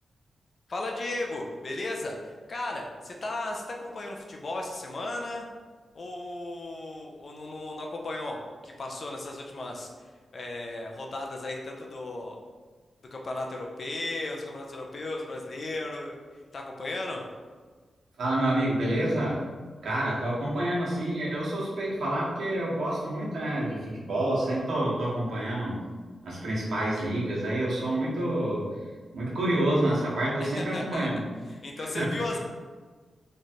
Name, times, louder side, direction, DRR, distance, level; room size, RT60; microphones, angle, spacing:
voice 1, 0.7-5.5 5.9-9.9 10.3-12.4 13.1-16.2 16.5-17.2 30.4-31.1 31.5-32.4, left 2 dB, 50° left, 1 dB, 0.6 m, -35 dB
voice 2, 18.2-19.4 19.8-25.8 26.2-28.7 29.1-31.2 31.8-32.1, right 1 dB, 80° right, -6 dB, 1.1 m, -28 dB
3.2 x 2.5 x 4.3 m, 1.5 s
cardioid pair, 85°, 0 cm